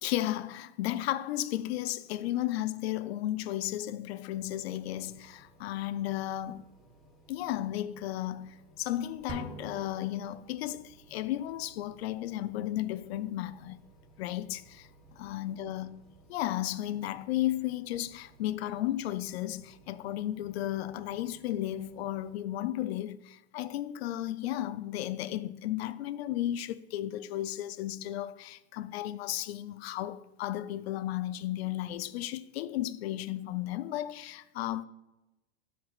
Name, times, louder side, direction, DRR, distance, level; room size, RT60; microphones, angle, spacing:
voice 1, 0.0-6.7 7.3-13.8 14.2-14.9 15.2-16.0 16.3-34.8, left 13 dB, 75° left, 0.5 m, -34 dB
sound 1, 4.3-22.4, right 1 dB, ahead, 0.9 m, -60 dB
sound 2, 9.3-11.0, right 3 dB, 15° right, 0.4 m, -45 dB
12.5 x 4.6 x 2.4 m
supercardioid pair, 140°, 32 cm